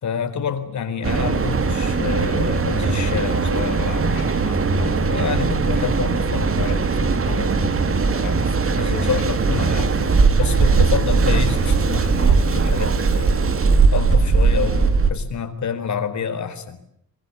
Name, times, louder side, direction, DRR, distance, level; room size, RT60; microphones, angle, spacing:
voice 1, 0.0-7.7 8.1-9.9 10.4-13.5 13.9-17.0, left 7 dB, 55° left, 8 dB, 4.3 m, -28 dB
Mechanical fan, 1.0-15.1, right 4 dB, 40° right, 2.7 m, -19 dB
sound 1, 4.1-14.1, left 7 dB, 80° left, 5.0 m, -40 dB
26.5 x 25.0 x 8.7 m, 0.73 s
wide cardioid pair, 180°, 35 cm